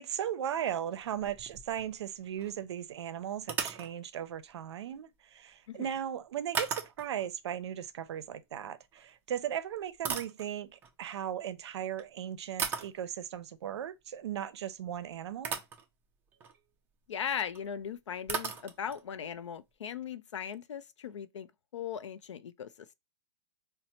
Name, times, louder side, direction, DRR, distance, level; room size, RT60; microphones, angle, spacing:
voice 1, 0.0-15.6, right 10 dB, 70° right, 0.5 m, -37 dB
sound 1, 0.9-2.1 2.4-2.5 3.4-3.9 6.5-7.3 8.9-9.1 9.7-10.9 11.9-12.0 12.6-13.0 14.8-14.9 15.4-15.8 16.3-16.6 17.5-17.6 17.8-17.9 18.3-19.1, right 6 dB, 15° right, 0.3 m, -37 dB
voice 2, 17.1-21.5 21.7-22.7, left 8 dB, 90° left, 0.4 m, -38 dB
4.1 x 2.0 x 2.8 m
hypercardioid pair, 145°, 15 cm